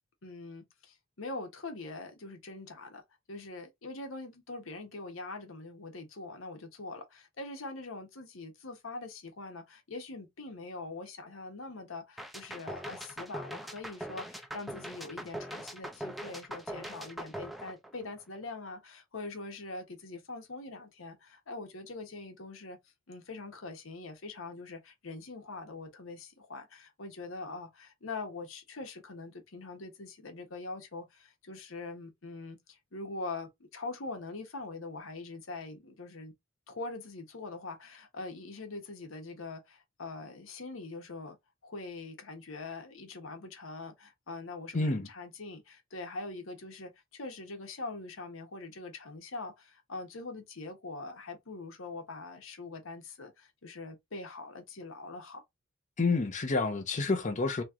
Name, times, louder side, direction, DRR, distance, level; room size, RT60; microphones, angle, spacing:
voice 1, 0.2-3.0 3.3-22.8 23.1-36.3 36.7-41.4 41.6-55.4, left 3 dB, 90° left, 1.1 m, -43 dB
sound 1, 12.2-18.4, right 1 dB, ahead, 0.5 m, -42 dB
voice 2, 44.7-45.1 56.0-57.6, left 3 dB, 40° left, 0.7 m, -29 dB
3.1 x 2.9 x 3.6 m
head